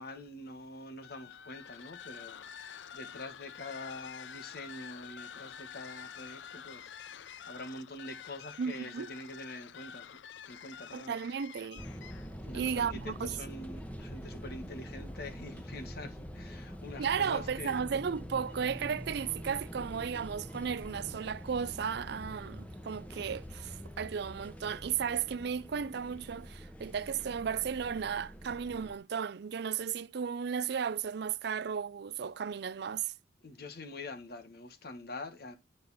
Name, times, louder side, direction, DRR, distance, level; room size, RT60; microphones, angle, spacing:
voice 1, 0.0-10.2 10.5-11.1 12.4-17.8 33.4-35.6, left 2 dB, 60° left, 1.4 m, -45 dB
sound 1, 1.0-12.4, left 8 dB, 80° left, 0.5 m, -48 dB
voice 2, 8.6-9.1 10.9-11.8 12.5-13.4 17.0-33.1, right 7 dB, 65° right, 0.4 m, -34 dB
sound 2, 11.8-28.9, equal, 10° left, 1.0 m, -45 dB
9.5 x 6.7 x 4.0 m
head